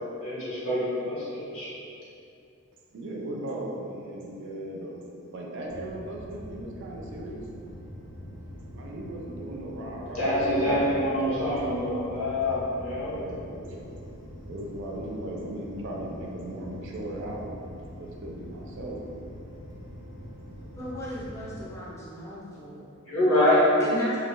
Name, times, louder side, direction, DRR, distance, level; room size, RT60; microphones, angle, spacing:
voice 1, 0.0-1.8 10.1-13.1 23.0-23.6, left 1 dB, 75° left, -9 dB, 0.9 m, -26 dB
voice 2, 2.9-5.0 5.3-7.4 8.7-11.7 13.1-13.9 14.5-17.6 18.0-19.0, right 1 dB, 55° right, -1 dB, 0.4 m, -37 dB
sound 1, 5.7-21.7, equal, 60° left, 0.5 m, -43 dB
voice 3, 20.8-22.9 23.8-24.2, equal, 15° left, -8 dB, 0.5 m, -36 dB
2.3 x 2.1 x 3.0 m, 2.6 s
head